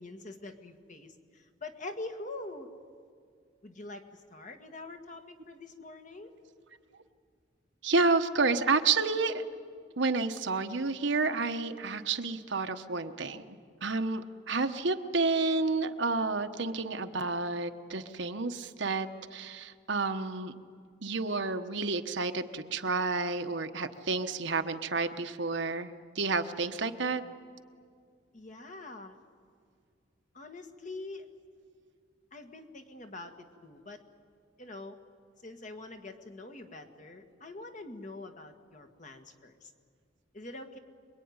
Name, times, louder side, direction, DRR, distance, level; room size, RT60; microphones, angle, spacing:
voice 1, 0.0-2.7 3.6-6.3 28.3-29.2 30.3-31.3 32.3-34.0 34.6-35.0 35.4-39.7 40.3-40.8, left 2 dB, 40° left, 5 dB, 1.9 m, -44 dB
voice 2, 7.8-9.4 10.0-13.6 13.8-20.5 21.0-27.2, right 3 dB, 65° right, 7 dB, 1.2 m, -30 dB
26.0 x 22.5 x 9.7 m, 2.1 s
head